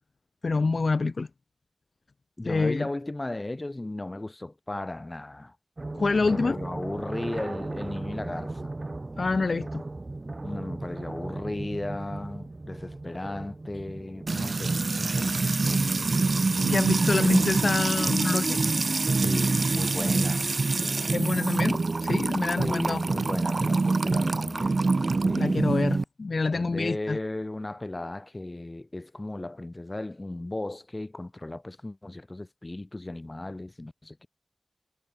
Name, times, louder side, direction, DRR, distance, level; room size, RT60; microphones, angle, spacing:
voice 1, 0.4-1.3 2.4-2.9 5.9-6.6 9.2-9.8 16.6-18.6 21.1-23.0 25.3-27.2, left 3 dB, 75° left, 0.8 m, -26 dB
voice 2, 2.4-5.6 6.2-8.8 10.4-16.3 19.2-20.6 22.6-24.9 25.2-25.6 26.5-34.3, left 2 dB, 35° left, 4.2 m, -36 dB
sound 1, 5.8-17.6, right 2 dB, 45° right, 1.3 m, -37 dB
Music / Water tap faucet / Trickle dribble, 14.3-26.0, right 3 dB, 65° right, 0.3 m, -25 dB
wide cardioid pair, 60°, 0 cm